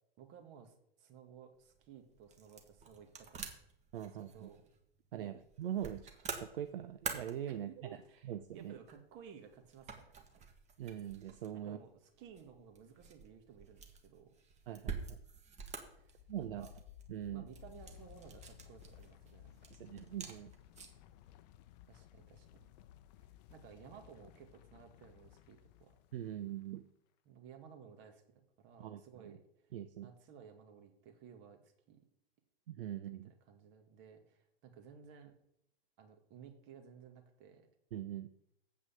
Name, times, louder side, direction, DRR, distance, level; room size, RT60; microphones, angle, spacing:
voice 1, 0.2-3.5 4.0-4.6 5.1-5.4 7.5-10.5 11.6-14.3 16.0-16.7 17.3-19.7 21.9-22.7 23.2-26.0 27.3-29.7 30.0-32.0 33.1-35.3 36.0-37.7, right 7 dB, 40° right, 5 dB, 2.1 m, -57 dB
sound 1, 1.5-21.1, right 5 dB, 25° right, 1.6 m, -49 dB
voice 2, 3.9-4.5 5.1-7.9 8.2-8.7 10.8-11.8 14.7-15.2 16.3-16.7 17.1-17.5 19.7-20.5 26.1-26.9 28.8-29.4 29.7-30.1 32.7-33.3 37.9-38.3, right 11 dB, 65° right, 10 dB, 0.7 m, -42 dB
sound 2, 15.9-26.7, left 12 dB, 45° left, 0.7 m, -58 dB
7.9 x 6.1 x 7.2 m, 0.74 s
hypercardioid pair, 110°, 30 cm